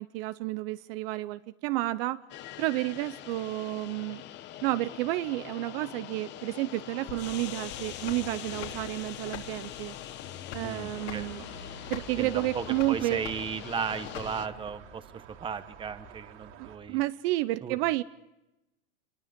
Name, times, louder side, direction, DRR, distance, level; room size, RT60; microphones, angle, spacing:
voice 1, 0.0-2.2 2.6-4.2 4.6-10.0 10.5-11.5 11.9-13.2 16.6-18.0, right 18 dB, 55° right, 14 dB, 0.8 m, -31 dB
sound 1, 2.3-14.5, left 12 dB, 30° left, 1.0 m, -43 dB
sound 2, 7.1-14.7, left 8 dB, 70° left, 4.0 m, -44 dB
voice 2, 10.6-11.2 12.2-17.0 17.6-17.8, right 6 dB, 15° right, 10 dB, 1.1 m, -36 dB
sound 3, 10.7-16.8, right 8 dB, 80° right, 3.7 m, -51 dB
26.5 x 22.0 x 5.2 m, 0.95 s
supercardioid pair, 160°, 35 cm